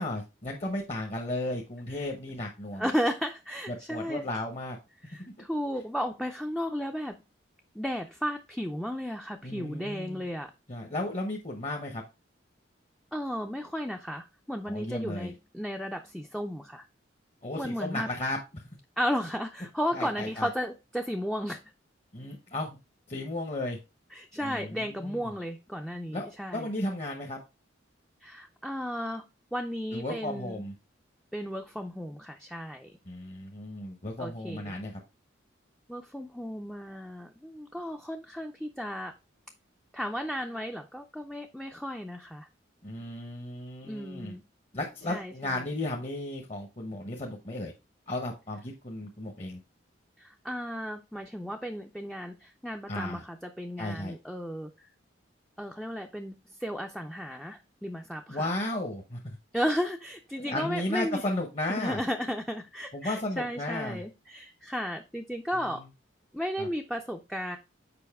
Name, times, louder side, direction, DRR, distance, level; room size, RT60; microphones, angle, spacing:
voice 1, 0.0-2.9 3.7-4.8 9.4-10.2 10.7-12.0 14.6-15.3 17.4-18.7 19.9-20.5 22.1-22.7 23.1-23.8 24.4-25.3 26.1-27.4 29.9-30.7 33.1-35.0 42.8-44.4 44.7-47.7 48.1-49.6 52.9-53.2 53.8-54.1 58.3-59.4 60.4-62.0 62.9-64.0 65.6-65.9 66.6-66.7, left 1 dB, 30° left, 2 dB, 0.8 m, -34 dB
voice 2, 2.8-4.2 5.0-7.2 7.7-10.5 13.1-16.8 17.5-18.1 19.0-21.6 24.1-26.7 28.2-30.6 31.3-33.0 34.2-34.7 35.9-39.1 39.9-42.5 43.8-44.4 45.1-45.6 50.2-54.9 55.6-58.5 59.5-61.3 61.7-65.8 66.3-67.6, equal, ahead, 4 dB, 0.4 m, -34 dB
6.9 x 5.1 x 3.5 m, 0.27 s
head